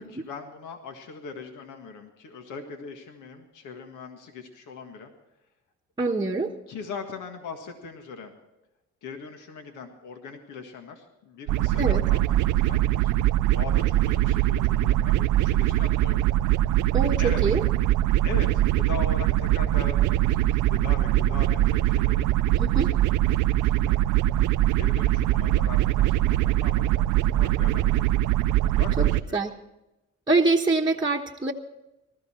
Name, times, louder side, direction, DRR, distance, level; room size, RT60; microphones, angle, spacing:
voice 1, 0.0-5.1 6.7-8.3 9.0-13.1 13.5-16.2 17.2-17.4 18.2-24.0 24.8-28.1 28.6-29.4, left 5 dB, 85° left, 5 dB, 1.7 m, -40 dB
voice 2, 6.0-6.5 11.8-12.0 16.9-17.6 22.6-22.9 29.0-29.1 29.3-29.5 30.3-31.5, right 3 dB, 15° right, -1 dB, 1.1 m, -24 dB
sound 1, 11.5-29.2, right 14 dB, 90° right, 0.5 m, -22 dB
19.5 x 13.5 x 4.4 m, 0.95 s
cardioid pair, 90°, 30 cm